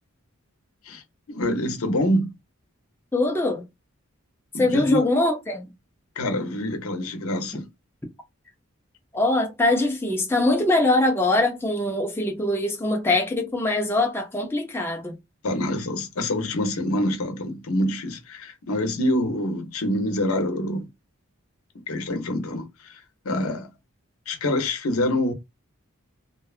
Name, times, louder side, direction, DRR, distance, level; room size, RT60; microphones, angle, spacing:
voice 1, 1.3-2.3 4.5-5.0 6.2-7.7 15.4-20.9 21.7-23.7 24.3-25.3, left 1 dB, 80° left, 0.7 m, -26 dB
voice 2, 3.1-3.6 4.5-5.7 9.1-15.2, left 2 dB, 10° left, 0.4 m, -23 dB
2.5 x 2.3 x 2.4 m
head